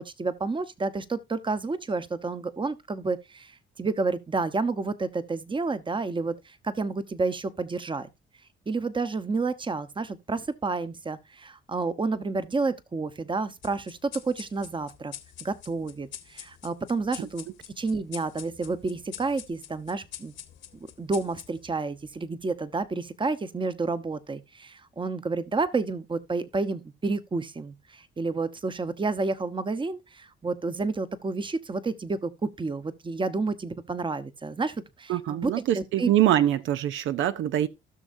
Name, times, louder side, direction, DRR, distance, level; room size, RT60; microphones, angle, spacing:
voice 1, 0.0-8.1 8.7-15.1 15.4-17.5 17.8-20.3 21.0-36.1, right 3 dB, 25° right, 1.0 m, -30 dB
sound 1, 13.6-22.5, left 10 dB, 70° left, 1.4 m, -46 dB
voice 2, 35.1-37.7, right 12 dB, 80° right, 0.6 m, -24 dB
16.0 x 6.3 x 2.6 m
cardioid pair, 90°, 20 cm